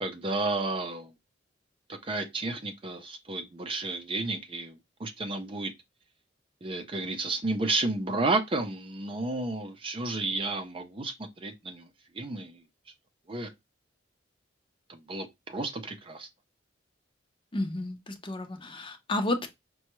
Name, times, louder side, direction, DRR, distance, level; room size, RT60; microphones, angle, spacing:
voice 1, 0.0-1.1 1.9-5.7 6.6-11.9 12.1-12.6 13.3-13.5 14.9-16.3, right 2 dB, 30° right, 0.5 m, -32 dB
voice 2, 17.5-19.5, left 2 dB, 25° left, 0.7 m, -31 dB
5.5 x 2.3 x 2.9 m
head